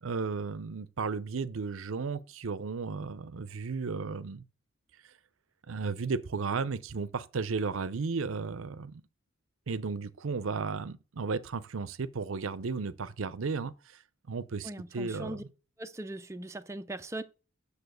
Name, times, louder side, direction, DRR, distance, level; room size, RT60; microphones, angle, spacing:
voice 1, 0.0-4.4 5.7-9.0 9.7-13.7 14.3-15.5, right 4 dB, 70° right, 0.6 m, -34 dB
voice 2, 14.6-15.4 15.8-17.2, right 1 dB, 15° right, 0.5 m, -39 dB
7.0 x 6.8 x 6.5 m
head